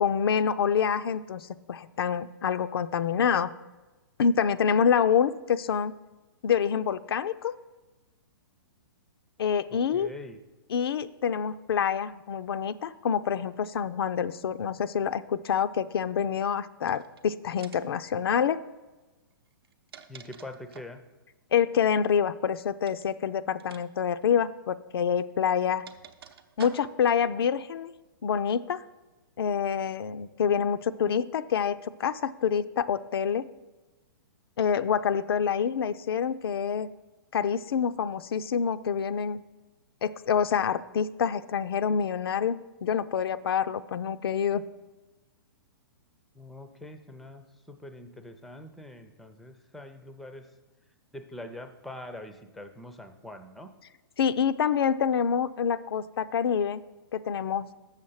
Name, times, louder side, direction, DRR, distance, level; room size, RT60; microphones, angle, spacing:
voice 1, 0.0-3.5 4.2-5.9 6.4-7.6 9.4-10.1 10.7-18.6 21.5-25.9 26.6-27.9 28.2-28.8 29.4-33.5 34.6-36.9 37.3-39.4 40.0-44.7 54.2-56.8 57.1-57.7, left 7 dB, 80° left, 12 dB, 0.4 m, -27 dB
voice 2, 9.7-10.4 20.1-21.0 46.3-50.5 51.1-53.7, left 1 dB, ahead, 8 dB, 0.4 m, -44 dB
sound 1, 16.8-17.2 17.6-18.0 19.5-21.0 22.8-23.1 23.6-23.8 24.1-24.2 25.2-27.1, right 7 dB, 80° right, 0.7 m, -49 dB
7.1 x 6.5 x 5.5 m, 1.2 s
hypercardioid pair, 145°, 13 cm